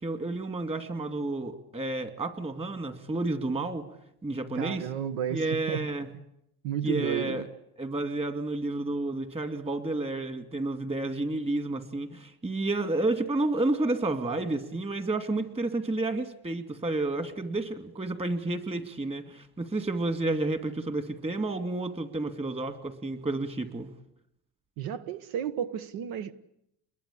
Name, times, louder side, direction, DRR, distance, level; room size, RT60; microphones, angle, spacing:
voice 1, 0.0-3.8 4.2-4.9 5.3-6.1 6.8-7.5 7.8-23.9, right 2 dB, 20° right, 8 dB, 2.5 m, -30 dB
voice 2, 4.6-6.2 6.6-7.4 24.8-26.3, right 10 dB, 80° right, 13 dB, 1.4 m, -32 dB
29.0 x 22.0 x 8.6 m, 0.78 s
cardioid pair, 130°, 33 cm